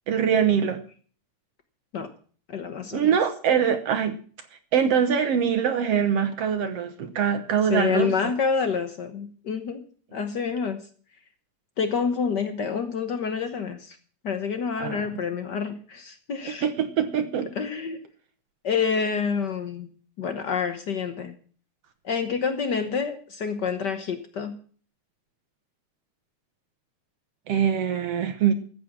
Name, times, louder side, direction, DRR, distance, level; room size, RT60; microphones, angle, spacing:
voice 1, 0.1-0.8 2.9-4.2 4.7-8.3 14.8-15.1 16.6-17.5 27.5-28.5, right 8 dB, 65° right, 8 dB, 1.9 m, -23 dB
voice 2, 2.5-3.1 7.7-9.8 10.1-10.8 11.8-14.0 14.2-16.7 17.5-18.0 18.6-19.9 20.2-21.3 22.0-24.5, left 6 dB, 65° left, 8 dB, 1.0 m, -28 dB
14.0 x 8.4 x 7.3 m, 0.44 s
omnidirectional pair, 3.4 m